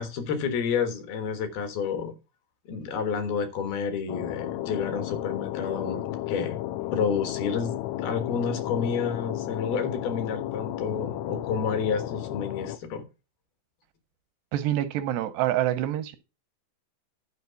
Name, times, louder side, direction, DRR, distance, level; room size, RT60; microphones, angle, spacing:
voice 1, 0.0-2.1 2.7-6.6 6.9-13.0, left 6 dB, 65° left, 2.8 m, -30 dB
sound 1, 4.1-12.8, left 14 dB, 85° left, 3.4 m, -33 dB
voice 2, 14.5-16.2, right 12 dB, 85° right, 2.3 m, -26 dB
12.0 x 4.6 x 6.9 m
omnidirectional pair, 5.7 m